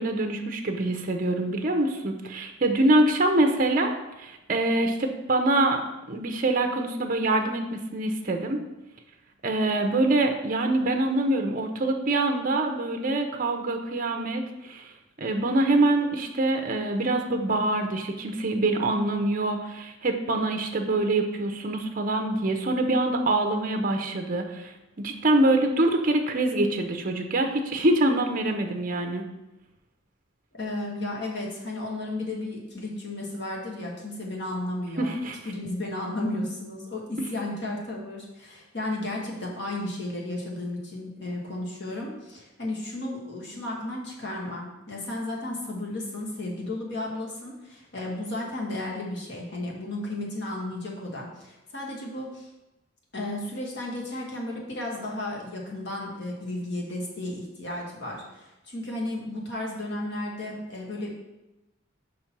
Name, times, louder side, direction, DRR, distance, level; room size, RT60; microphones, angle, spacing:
voice 1, 0.0-5.8 6.1-8.6 9.4-14.9 15.2-29.2 35.0-35.4, right 2 dB, 40° right, 4 dB, 0.7 m, -25 dB
voice 2, 30.6-35.2 35.4-52.5 53.1-61.1, left 1 dB, 55° left, -2 dB, 1.6 m, -33 dB
5.3 x 4.3 x 5.8 m, 0.99 s
head